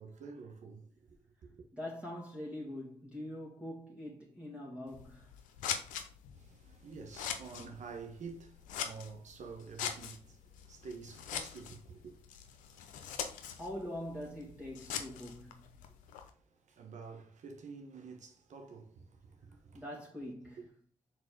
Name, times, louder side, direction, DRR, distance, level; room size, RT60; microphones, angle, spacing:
voice 1, 0.0-1.7 6.3-12.2 16.1-19.8 20.6-20.7, right 5 dB, 70° right, 1.5 m, -49 dB
voice 2, 1.7-5.4 13.5-15.6 19.7-20.6, left 1 dB, 10° right, 2.0 m, -43 dB
Scissors, 4.9-16.3, left 8 dB, 85° left, 0.7 m, -43 dB
5.0 x 4.1 x 5.2 m
supercardioid pair, 45°, 13 cm